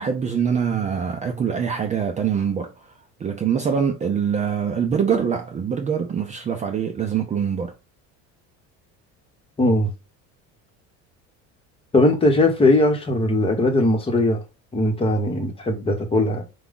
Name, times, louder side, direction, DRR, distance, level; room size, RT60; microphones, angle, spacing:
voice 1, 0.0-2.7 3.2-7.7, right 7 dB, 25° right, 0.5 m, -24 dB
voice 2, 9.6-9.9 11.9-14.4 14.7-16.5, left 1 dB, 20° left, 1.1 m, -19 dB
4.7 x 2.3 x 3.8 m
cardioid pair, 130°, 31 cm